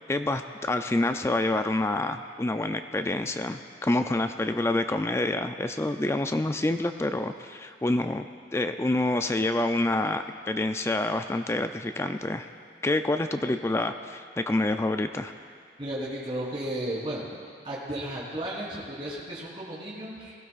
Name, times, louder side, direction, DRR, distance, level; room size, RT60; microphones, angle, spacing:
voice 1, 0.1-8.3 8.5-12.5 12.8-15.3, left 2 dB, 15° left, 8 dB, 0.3 m, -27 dB
voice 2, 15.8-17.3 17.6-20.3, right 1 dB, 30° right, -7 dB, 3.5 m, -34 dB
20.0 x 15.0 x 2.4 m, 2.2 s
head